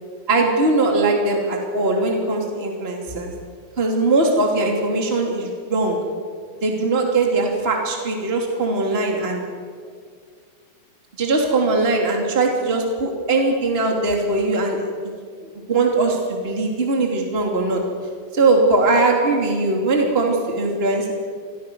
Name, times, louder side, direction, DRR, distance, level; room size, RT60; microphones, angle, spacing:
voice 1, 0.3-3.3 3.8-6.0 6.6-9.4 11.2-15.1 15.7-17.8 18.3-21.1, right 2 dB, 20° right, 1 dB, 3.0 m, -20 dB
28.0 x 23.0 x 6.3 m, 2.1 s
omnidirectional pair, 3.4 m